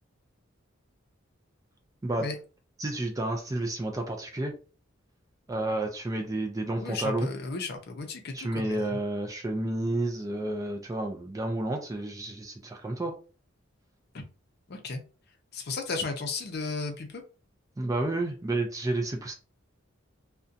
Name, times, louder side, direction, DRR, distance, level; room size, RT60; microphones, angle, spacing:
voice 1, 2.8-4.5 5.5-7.3 8.3-13.1 17.8-19.3, right 2 dB, 15° right, 3 dB, 0.4 m, -30 dB
voice 2, 6.8-9.0 14.1-14.2 14.7-15.0 15.5-17.2, left 3 dB, 55° left, 4 dB, 0.6 m, -34 dB
2.7 x 2.1 x 2.4 m, 0.35 s
head